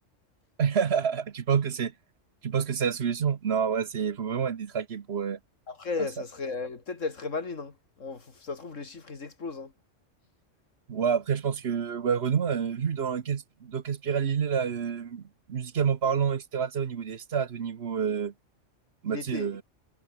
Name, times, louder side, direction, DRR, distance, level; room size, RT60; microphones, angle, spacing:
voice 1, 0.6-1.9 2.4-5.4 10.9-15.2 15.5-18.3 19.0-19.6, right 7 dB, 60° right, 1.2 m, -28 dB
voice 2, 5.7-9.7 19.1-19.5, left 4 dB, 85° left, 2.9 m, -35 dB
omnidirectional pair, 1.3 m